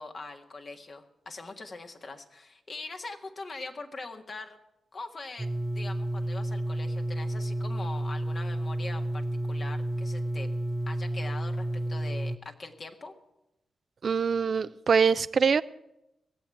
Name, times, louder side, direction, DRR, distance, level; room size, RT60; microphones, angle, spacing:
voice 1, 0.0-4.6 4.9-5.5 5.7-10.5 10.9-13.1, left 3 dB, 55° left, 4 dB, 1.7 m, -42 dB
sound 1, 5.4-12.4, right 1 dB, 25° right, 0.7 m, -31 dB
voice 2, 14.0-15.6, right 6 dB, 60° right, 16 dB, 0.4 m, -24 dB
17.0 x 7.7 x 9.1 m, 0.89 s
supercardioid pair, 40°, 0 cm